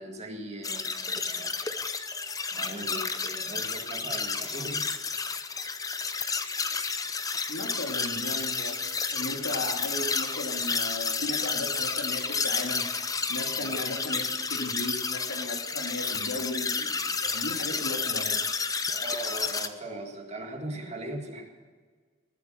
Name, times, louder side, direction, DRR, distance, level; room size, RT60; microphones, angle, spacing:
voice 1, 0.0-1.5 2.5-4.9 13.6-13.8 18.9-21.5, right 1 dB, 30° right, 2 dB, 2.0 m, -39 dB
sound 1, 0.6-19.7, left 4 dB, 15° left, 0.7 m, -31 dB
voice 2, 7.5-8.8 9.1-12.8 13.3-16.9 17.2-18.3, left 1 dB, 80° left, 2 dB, 2.5 m, -36 dB
19.5 x 8.3 x 6.4 m, 1.6 s
head